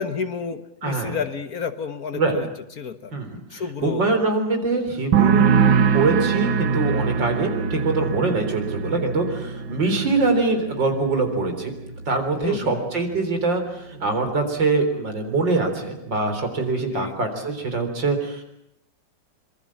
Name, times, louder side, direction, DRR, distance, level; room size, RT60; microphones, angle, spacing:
voice 1, 0.0-2.5 2.8-3.1 3.5-4.1 12.4-12.9 16.8-17.2, left 6 dB, 55° left, 10 dB, 1.7 m, -30 dB
voice 2, 0.8-1.2 2.1-2.4 3.1-3.3 3.5-5.5 5.9-11.7 12.1-18.4, right 3 dB, 75° right, 6 dB, 4.6 m, -23 dB
sound 1, 5.1-12.6 12.9-13.4, right 6 dB, 90° right, 2.0 m, -23 dB
25.5 x 23.5 x 7.5 m, 0.78 s
omnidirectional pair, 2.0 m